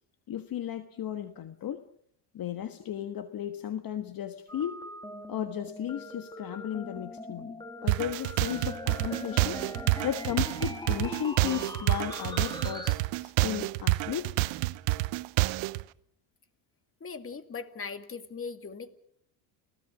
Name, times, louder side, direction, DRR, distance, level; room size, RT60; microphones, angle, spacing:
voice 1, 0.3-1.8 2.3-4.8 5.3-7.5 7.8-9.6 10.0-14.3, left 10 dB, 45° left, 9 dB, 1.5 m, -35 dB
sound 1, 4.5-12.9, left 1 dB, 10° left, 2.5 m, -41 dB
sound 2, 7.9-15.8, right 21 dB, 75° right, 0.9 m, -28 dB
voice 2, 17.0-18.9, left 5 dB, 25° left, 10 dB, 2.2 m, -39 dB
29.5 x 18.0 x 6.1 m, 0.66 s
supercardioid pair, 90°, 47 cm